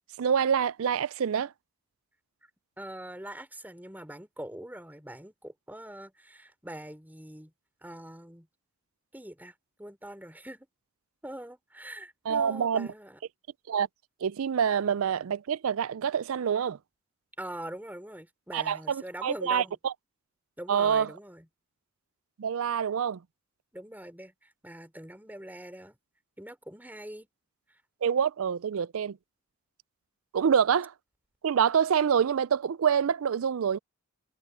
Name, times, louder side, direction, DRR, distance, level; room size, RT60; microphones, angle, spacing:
voice 1, 0.2-1.5 12.3-12.9 13.7-13.9 14.2-16.8 18.5-19.9 20.7-21.1 22.4-23.2 28.0-29.2 30.3-30.9 31.4-33.8, right 7 dB, 65° right, 0.4 m, -26 dB
voice 2, 2.8-7.5 7.8-8.5 9.1-10.7 11.2-13.2 17.4-19.8 20.6-21.5 23.7-26.0 26.4-27.3 27.7-27.8, right 1 dB, 10° right, 4.4 m, -43 dB
head